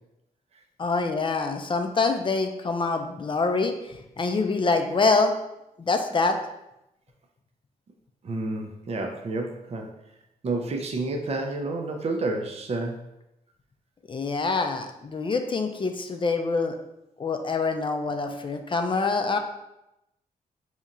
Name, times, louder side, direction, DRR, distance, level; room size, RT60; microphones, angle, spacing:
voice 1, 0.8-5.3 5.8-6.4 14.1-16.8 17.2-19.4, left 3 dB, 35° left, 5 dB, 0.4 m, -25 dB
voice 2, 8.2-9.9 10.4-13.0, right 2 dB, 45° right, 3 dB, 0.5 m, -30 dB
4.1 x 2.8 x 2.5 m, 0.87 s
cardioid pair, 60°, 15 cm